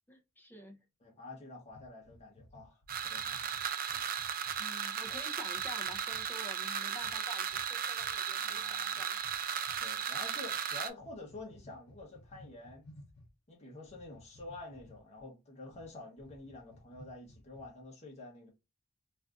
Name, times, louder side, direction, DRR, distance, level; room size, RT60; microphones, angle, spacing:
voice 1, 0.1-0.8 4.6-9.2, left 1 dB, 10° left, 0.6 m, -49 dB
voice 2, 1.0-3.5 3.9-4.0 8.4-9.0 9.8-12.9 13.5-18.5, left 2 dB, 30° left, 0.9 m, -49 dB
sound 1, 1.7-4.6 5.0-5.2 5.5-6.3 7.0-7.2 7.5-7.7 7.9-8.1 9.2-9.8 11.0-13.3 13.8-15.2 15.7-15.9 16.2-17.8, left 1 dB, 85° left, 0.7 m, -57 dB
sound 2, 2.9-10.9, right 8 dB, 40° right, 0.4 m, -36 dB
2.5 x 2.4 x 3.4 m
head